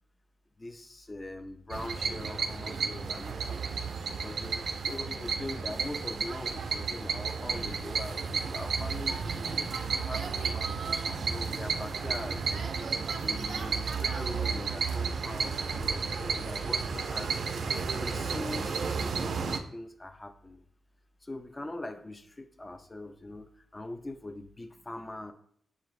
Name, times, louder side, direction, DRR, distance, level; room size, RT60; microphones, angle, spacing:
voice 1, 0.6-3.6 4.1-10.9 11.2-12.8 13.2-17.4 17.9-20.6 21.2-25.3, left 1 dB, 20° left, 9 dB, 0.4 m, -42 dB
sound 1, 1.7-19.6, right 5 dB, 65° right, 0.4 m, -32 dB
6.3 x 2.5 x 3.1 m, 0.65 s
wide cardioid pair, 140°, 0 cm